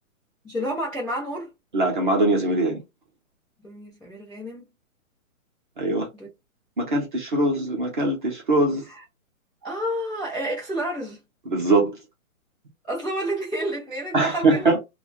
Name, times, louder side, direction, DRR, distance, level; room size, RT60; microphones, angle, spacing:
voice 1, 0.4-1.5 3.6-4.6 6.1-6.3 8.9-9.0 9.6-11.2 12.9-14.6, right 1 dB, 5° left, 0.9 m, -30 dB
voice 2, 1.7-2.8 5.8-6.1 6.8-8.8 11.5-12.0 14.1-14.8, right 2 dB, 35° right, 0.8 m, -22 dB
3.1 x 2.4 x 2.3 m
hypercardioid pair, 180°, 42 cm